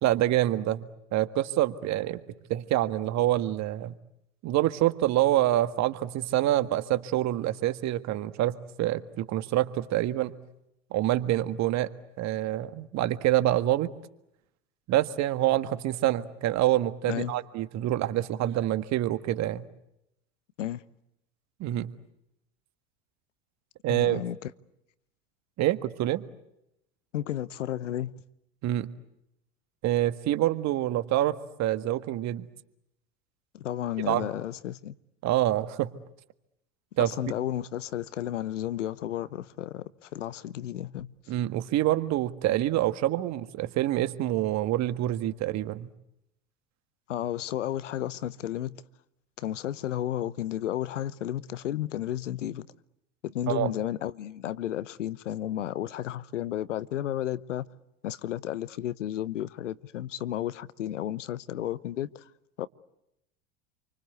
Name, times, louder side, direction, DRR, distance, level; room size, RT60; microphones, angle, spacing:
voice 1, 0.0-2.2 2.5-3.9 4.4-10.4 10.9-11.9 12.2-13.9 14.9-19.7 21.6-21.9 23.8-24.2 25.6-26.2 28.6-28.9 29.8-32.5 34.1-34.3 35.2-35.9 37.0-37.1 41.3-45.9 53.5-53.7, right 14 dB, 50° right, 1.7 m, -26 dB
voice 2, 23.9-24.5 27.1-28.1 33.5-34.9 37.0-41.1 47.1-48.8 49.4-52.7 53.2-57.7 58.0-62.2 62.6-62.7, left 12 dB, 85° left, 1.0 m, -33 dB
28.5 x 24.5 x 8.1 m
hypercardioid pair, 85°, 36 cm